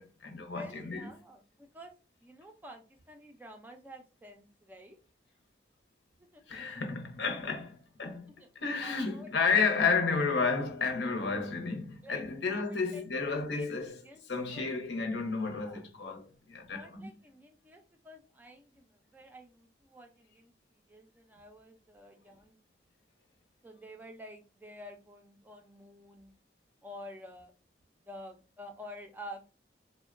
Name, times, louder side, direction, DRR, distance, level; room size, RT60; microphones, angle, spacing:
voice 1, 0.0-1.1 6.5-14.0 14.3-17.1, left 4 dB, 75° left, 0.8 m, -32 dB
voice 2, 0.5-1.9 2.2-5.0 6.3-6.4 8.7-9.6 12.0-12.2 12.5-13.1 13.4-14.2 14.5-14.7 15.6-15.9 16.7-22.6 23.6-26.3 26.8-27.5 28.1-29.4, equal, 10° right, 0.3 m, -50 dB
3.7 x 2.1 x 2.4 m
head